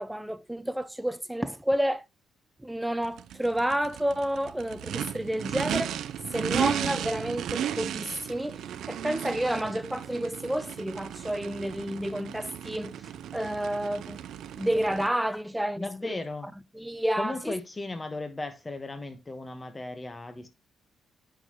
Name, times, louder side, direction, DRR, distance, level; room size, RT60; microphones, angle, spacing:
voice 1, 0.0-2.0 2.6-6.0 6.3-14.2 14.6-16.2 16.7-17.5, right 1 dB, 5° right, 0.6 m, -30 dB
Race car auto racing / Idling / Accelerating revving vroom, 3.0-15.1, right 10 dB, 75° right, 0.5 m, -35 dB
voice 2, 15.7-16.5 17.2-20.5, left 2 dB, 20° left, 1.3 m, -36 dB
8.9 x 6.3 x 3.0 m
cardioid pair, 90°, 0 cm